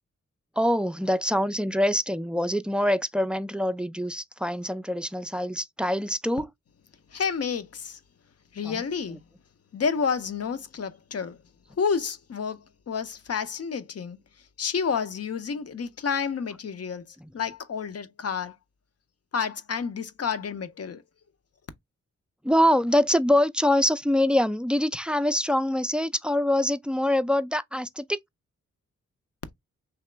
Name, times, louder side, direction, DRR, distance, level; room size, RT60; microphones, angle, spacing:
voice 1, 0.6-6.5 8.6-8.8 17.2-17.3 22.4-28.2, left 1 dB, 5° right, 0.4 m, -24 dB
voice 2, 7.1-8.0 8.5-9.2 9.7-11.4 11.8-14.2 14.6-18.5 19.3-21.0, left 6 dB, 55° left, 0.7 m, -30 dB
3.5 x 2.9 x 3.2 m
cardioid pair, 55°, 29 cm